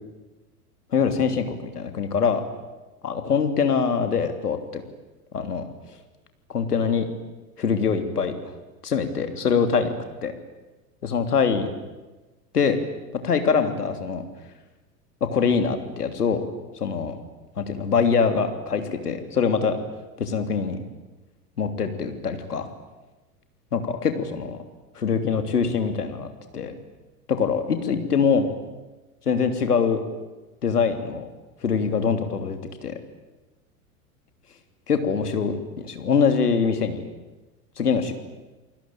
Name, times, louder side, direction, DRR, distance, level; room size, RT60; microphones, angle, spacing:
voice 1, 0.9-2.4 3.0-4.8 5.3-5.7 6.5-7.1 7.6-8.5 8.8-9.9 10.2-10.3 11.0-11.7 12.5-12.8 13.2-14.3 15.2-16.4 16.7-17.2 17.6-19.8 20.2-20.8 21.6-22.7 23.7-24.6 24.9-26.7 27.3-28.5 29.2-30.0 30.6-31.3 31.6-33.0 34.9-37.0 37.8-38.1, left 6 dB, 75° left, 7 dB, 3.2 m, -23 dB
29.0 x 20.5 x 9.0 m, 1.2 s
figure-of-eight pair, 90°, 46 cm